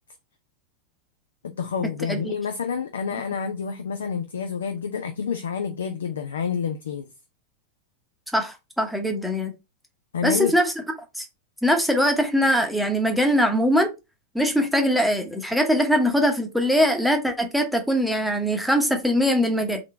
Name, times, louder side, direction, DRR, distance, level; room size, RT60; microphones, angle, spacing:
voice 1, 1.4-7.1 10.1-10.6, left 6 dB, 65° left, 0.5 m, -28 dB
voice 2, 8.3-9.5 10.2-10.7 11.2-11.3 11.6-13.9 14.3-19.8, equal, ahead, 0.9 m, -22 dB
3.8 x 3.2 x 3.2 m
figure-of-eight pair, 90°, 0 cm